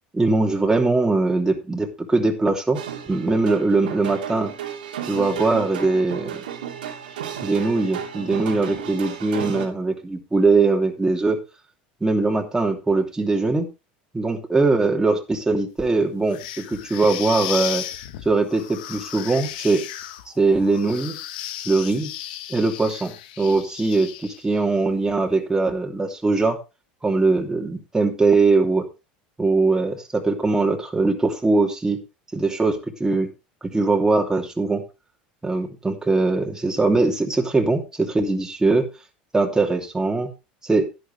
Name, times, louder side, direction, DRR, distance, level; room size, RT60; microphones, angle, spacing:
voice 1, 0.1-2.8 3.1-4.5 5.1-6.4 7.4-11.4 12.0-13.7 14.1-17.8 18.2-19.9 20.4-21.2 21.7-22.1 22.5-26.6 27.0-28.9 29.4-32.0 32.3-33.3 33.7-34.8 35.4-38.9 39.3-40.3 40.6-40.9, right 3 dB, 10° right, 1 dB, 2.9 m, -21 dB
sound 1, 2.7-9.7, right 9 dB, 85° right, 2.7 m, -33 dB
sound 2, 16.3-24.6, left 12 dB, 75° left, 1.3 m, -35 dB
11.5 x 10.5 x 3.4 m, 0.28 s
hypercardioid pair, 90°, 5 cm